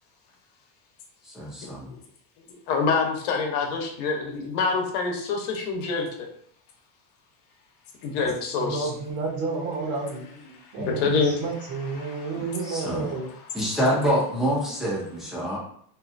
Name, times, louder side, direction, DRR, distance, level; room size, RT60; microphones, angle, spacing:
voice 1, 1.2-1.9 8.2-8.3 10.8-10.9 12.3-13.1 13.5-15.6, equal, ahead, -6 dB, 0.4 m, -27 dB
voice 2, 2.7-6.1 8.0-8.9 10.9-11.3 12.0-12.3, left 4 dB, 70° left, 1 dB, 0.9 m, -26 dB
voice 3, 8.6-10.2 10.7-13.3, right 3 dB, 50° right, -2 dB, 0.7 m, -30 dB
2.7 x 2.3 x 2.5 m, 0.62 s
supercardioid pair, 140°, 49 cm